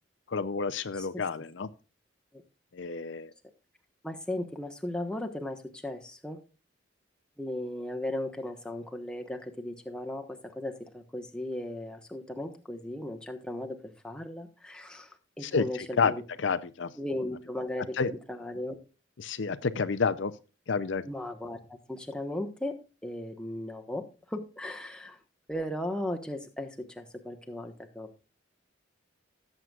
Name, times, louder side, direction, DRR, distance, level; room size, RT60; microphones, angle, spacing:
voice 1, 0.3-1.7 2.7-3.3 15.4-15.6 16.0-16.1 16.4-16.9 18.0-18.1 19.2-20.3 20.7-21.0, left 5 dB, 70° left, 11 dB, 0.6 m, -29 dB
voice 2, 4.0-6.4 7.4-16.2 17.0-18.8 21.0-25.2 25.5-28.1, left 1 dB, 5° left, 3 dB, 1.1 m, -37 dB
17.0 x 7.7 x 2.4 m, 0.33 s
head